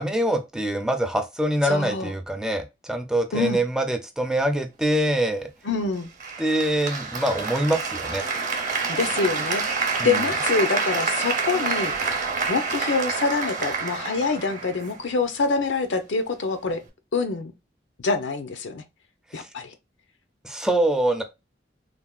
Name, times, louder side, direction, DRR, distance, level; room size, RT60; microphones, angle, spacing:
voice 1, 0.0-5.5 6.4-8.2 10.0-10.2 19.3-19.5 20.4-21.2, right 1 dB, 5° right, 0.4 m, -24 dB
voice 2, 1.6-2.1 3.3-3.6 5.6-6.1 8.9-9.6 10.0-11.9 12.5-16.8 17.1-17.5 18.0-18.8 19.3-19.7, left 4 dB, 85° left, 0.6 m, -25 dB
Applause, 6.2-15.2, right 4 dB, 45° right, 0.7 m, -27 dB
3.3 x 2.2 x 2.3 m
head